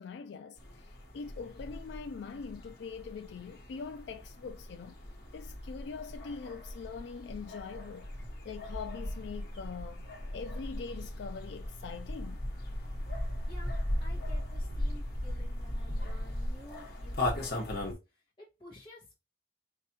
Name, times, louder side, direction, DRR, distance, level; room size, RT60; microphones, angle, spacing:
voice 1, 0.0-5.0 5.3-8.1 8.4-10.1 10.3-12.4, left 5 dB, 75° left, 0.3 m, -43 dB
sound 1, 0.6-17.9, left 1 dB, 55° left, 1.4 m, -38 dB
voice 2, 13.2-19.1, left 1 dB, 30° left, 1.7 m, -53 dB
4.8 x 3.3 x 2.8 m
head